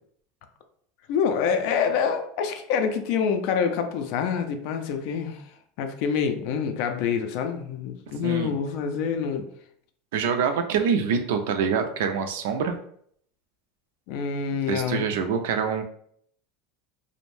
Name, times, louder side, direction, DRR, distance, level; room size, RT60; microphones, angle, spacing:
voice 1, 1.1-5.4 5.8-9.5 14.1-15.1, left 6 dB, 50° left, 7 dB, 0.3 m, -26 dB
voice 2, 8.2-8.5 10.1-12.8 14.7-15.8, right 6 dB, 80° right, 7 dB, 0.4 m, -25 dB
2.5 x 2.0 x 3.1 m, 0.65 s
supercardioid pair, 175°, 0 cm